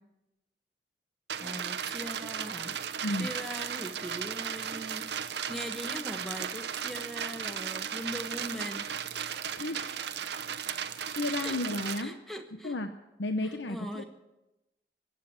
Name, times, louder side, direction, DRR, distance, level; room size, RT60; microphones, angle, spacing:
sound 1, 1.3-12.0, right 8 dB, 75° right, 0.8 m, -36 dB
voice 1, 1.4-2.8 3.2-9.1 11.4-11.6 12.0-12.7 13.7-14.0, equal, ahead, 5 dB, 1.3 m, -41 dB
voice 2, 9.6-10.2 10.6-12.2 12.6-12.9 13.2-14.0, left 2 dB, 85° left, 7 dB, 0.8 m, -33 dB
22.0 x 8.4 x 7.4 m, 0.96 s
head